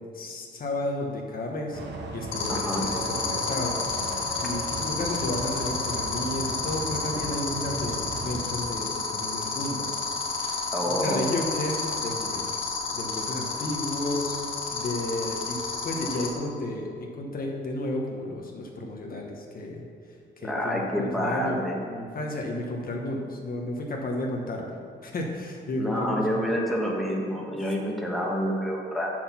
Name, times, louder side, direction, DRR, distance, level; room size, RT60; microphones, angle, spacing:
voice 1, 0.1-1.8 2.1-9.9 10.3-14.4 14.7-19.8 20.4-24.7 25.0-26.5, left 1 dB, 45° left, 0 dB, 1.2 m, -32 dB
sound 1, 1.7-8.5, right 3 dB, 65° right, 1.2 m, -37 dB
sound 2, 2.3-16.3, left 4 dB, 85° left, 1.5 m, -30 dB
voice 2, 2.5-2.9 10.7-11.2 20.4-21.8 25.8-29.1, equal, ahead, -2 dB, 1.4 m, -28 dB
6.6 x 6.0 x 5.8 m, 2.2 s
cardioid pair, 90°, 20 cm